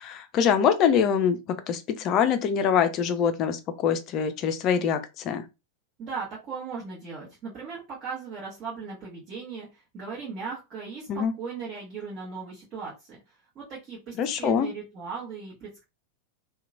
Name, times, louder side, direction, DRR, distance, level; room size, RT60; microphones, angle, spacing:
voice 1, 0.0-1.4 1.7-5.4 11.1-11.3 14.2-14.7, left 7 dB, 35° left, 0.4 m, -24 dB
voice 2, 6.0-13.2 13.5-15.8, right 5 dB, 35° right, 1.0 m, -37 dB
2.9 x 2.2 x 2.5 m
figure-of-eight pair, 90°, 0 cm